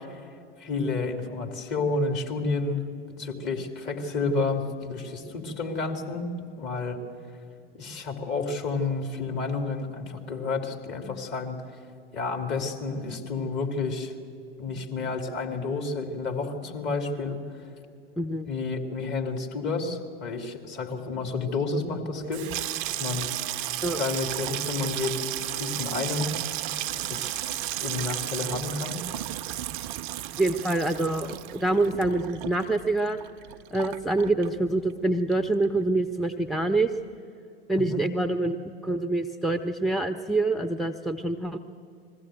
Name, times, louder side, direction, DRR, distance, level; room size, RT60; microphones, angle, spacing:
voice 1, 0.6-2.8 3.2-7.0 7.7-11.6 12.1-14.1 14.6-17.4 18.5-22.5 22.8-23.3 23.9-26.3 26.9-27.4 27.8-29.0 37.8-38.0, left 3 dB, 35° left, 2 dB, 2.9 m, -30 dB
Water tap faucet / Sink (filling or washing), 22.2-35.0 35.3-36.0 36.2-36.6, right 14 dB, 50° right, 0.5 m, -34 dB
voice 2, 30.4-33.2 33.7-36.9 37.7-41.6, right 2 dB, ahead, 8 dB, 0.6 m, -26 dB
21.0 x 15.0 x 9.1 m, 2.6 s
figure-of-eight pair, 85°, 30 cm